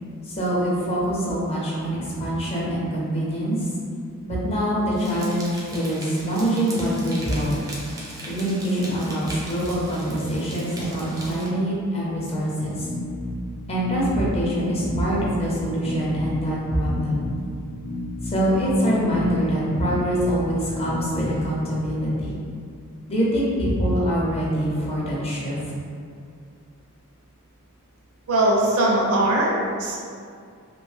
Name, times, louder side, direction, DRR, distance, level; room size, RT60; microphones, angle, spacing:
voice 1, 0.3-3.7 4.3-7.6 8.2-12.9 13.7-17.2 18.2-22.3 23.1-25.6, equal, 25° left, -6 dB, 0.6 m, -24 dB
sound 1, 4.9-11.5, right 1 dB, 15° right, 0.3 m, -39 dB
sound 2, 12.8-21.8, left 1 dB, 80° left, 0.6 m, -33 dB
voice 2, 28.3-30.0, right 1 dB, 70° right, -2 dB, 0.5 m, -20 dB
2.5 x 2.1 x 3.2 m, 2.3 s
head